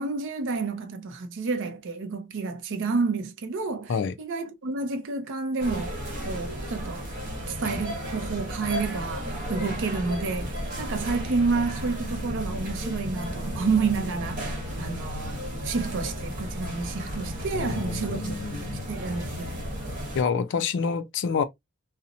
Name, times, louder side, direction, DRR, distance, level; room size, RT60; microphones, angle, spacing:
voice 1, 0.0-3.9 4.2-6.0 6.2-7.1 7.5-19.6, right 4 dB, 60° right, 0.5 m, -30 dB
sound 1, 5.6-20.2, equal, 40° right, 1.1 m, -34 dB
voice 2, 17.5-18.9 20.1-21.4, left 5 dB, 55° left, 0.4 m, -28 dB
2.8 x 2.0 x 2.4 m
head